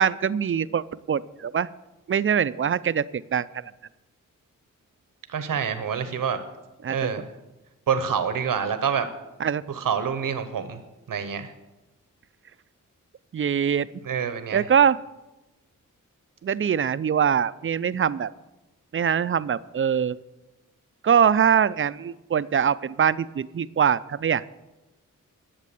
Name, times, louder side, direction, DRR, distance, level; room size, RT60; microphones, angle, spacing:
voice 1, 0.0-1.7 2.1-3.7 6.8-7.0 9.4-9.6 13.3-13.9 14.5-15.0 16.4-18.3 18.9-20.2 21.0-24.5, right 8 dB, 40° right, 16 dB, 0.4 m, -23 dB
voice 2, 5.3-6.4 6.9-7.3 7.9-9.1 9.7-10.8 11.1-11.5 14.1-14.6, right 7 dB, 85° right, 9 dB, 1.0 m, -27 dB
11.5 x 7.5 x 6.9 m, 1.0 s
cardioid pair, 70°, 32 cm